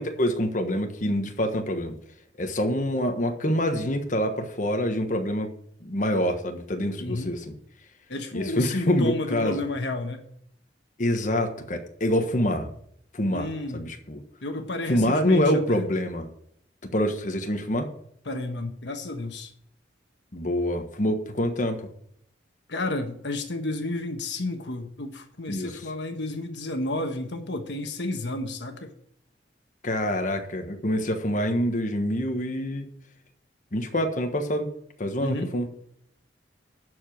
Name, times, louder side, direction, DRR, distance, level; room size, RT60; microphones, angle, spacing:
voice 1, 0.0-1.9 2.4-5.5 5.8-7.5 8.3-9.6 11.0-12.7 13.1-14.2 14.9-16.3 16.9-17.9 20.3-21.9 25.5-25.8 29.8-32.9 33.7-34.7 35.0-35.7, left 1 dB, 45° left, 5 dB, 1.3 m, -26 dB
voice 2, 7.0-7.3 8.1-10.2 13.3-13.8 14.4-15.8 18.2-19.5 22.7-28.9 35.2-35.5, left 2 dB, 75° left, 5 dB, 1.3 m, -31 dB
12.0 x 4.9 x 7.6 m, 0.68 s
head